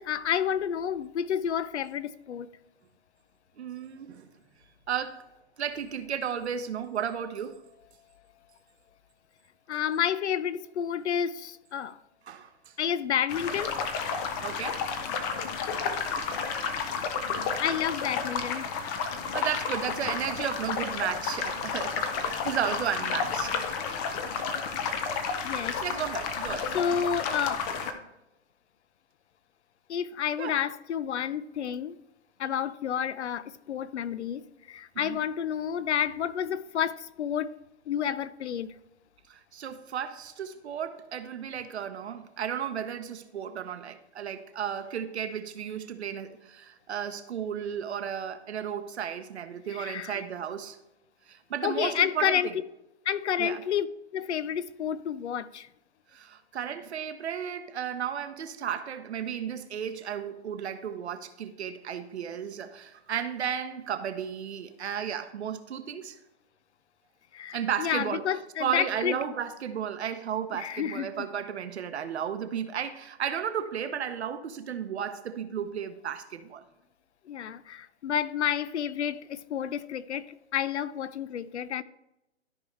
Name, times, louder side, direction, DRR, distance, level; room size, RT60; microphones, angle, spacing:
voice 1, 0.0-2.5 9.7-12.0 12.8-13.7 17.6-18.7 25.4-25.8 26.7-27.6 29.9-31.9 32.4-37.6 37.9-38.7 49.8-50.2 51.6-52.5 53.1-53.9 54.1-55.7 67.3-69.1 70.5-71.1 77.3-81.8, left 8 dB, 75° left, 0.6 m, -30 dB
voice 2, 3.6-4.3 4.9-5.2 5.6-7.6 12.3-12.7 14.4-14.8 19.1-23.8 24.1-24.3 25.8-26.7 30.4-30.6 34.9-35.2 39.3-50.8 51.3-52.5 53.4-53.6 56.1-66.2 67.5-68.3 68.6-76.6, right 8 dB, 70° right, 1.0 m, -34 dB
sound 1, 13.3-27.9, left 5 dB, 15° left, 0.4 m, -31 dB
13.5 x 4.8 x 3.2 m
hypercardioid pair, 135°, 34 cm